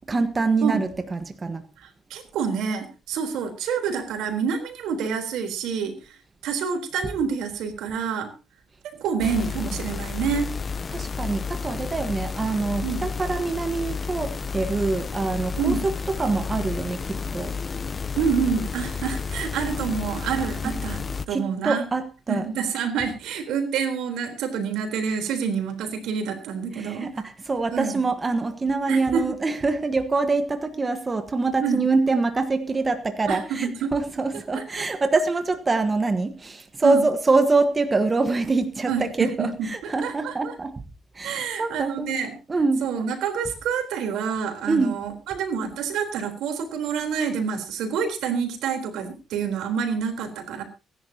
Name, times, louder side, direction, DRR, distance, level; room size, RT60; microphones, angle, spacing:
voice 1, 0.1-1.6 10.9-17.5 20.6-20.8 21.3-22.4 26.7-40.7 41.1-42.1 42.5-42.9 44.7-44.9, right 3 dB, 30° right, 8 dB, 1.4 m, -25 dB
voice 2, 1.8-5.9 6.4-8.3 9.0-10.5 12.8-13.1 15.6-15.9 18.2-21.0 21.3-21.9 22.3-27.1 27.7-28.0 28.9-29.2 31.6-31.8 33.3-33.9 34.5-34.9 36.8-37.1 38.9-40.5 41.2-42.3 42.8-50.6, right 6 dB, 85° right, 6 dB, 3.8 m, -27 dB
sound 1, 9.2-21.3, left 5 dB, 35° left, 0.8 m, -31 dB
24.5 x 11.0 x 2.9 m, 0.31 s
cardioid pair, 90°, 0 cm